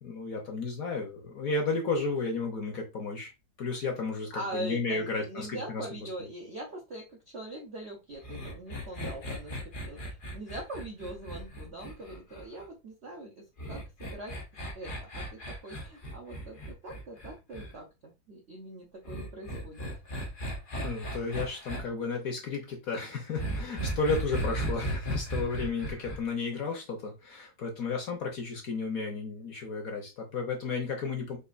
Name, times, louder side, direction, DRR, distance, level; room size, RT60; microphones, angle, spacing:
voice 1, 0.0-3.3 3.6-6.1 20.8-31.4, left 4 dB, 60° left, 2 dB, 1.0 m, -33 dB
voice 2, 4.3-14.3 14.7-19.9, right 1 dB, 70° right, 0 dB, 0.6 m, -42 dB
sound 1, 8.2-12.6 13.6-17.7 19.1-21.8 23.4-26.2, right 1 dB, 90° left, 0.4 m, -36 dB
5.1 x 2.5 x 2.4 m, 0.27 s
omnidirectional pair, 2.1 m